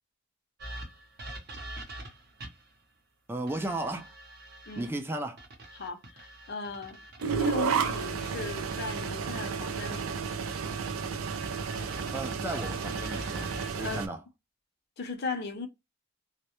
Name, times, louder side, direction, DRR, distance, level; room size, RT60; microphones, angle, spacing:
sound 1, 0.6-2.7 3.5-4.9 5.4-9.1 9.5-13.7, right 1 dB, 50° right, 0.7 m, -45 dB
voice 1, 3.3-4.1 4.8-5.4 12.1-14.2, right 2 dB, 10° right, 0.3 m, -35 dB
voice 2, 5.7-7.0 7.4-10.2 13.7-14.1 15.0-15.7, left 3 dB, 55° left, 0.6 m, -37 dB
sound 2, 7.2-14.1, right 6 dB, 90° right, 0.4 m, -32 dB
2.1 x 2.1 x 2.8 m
head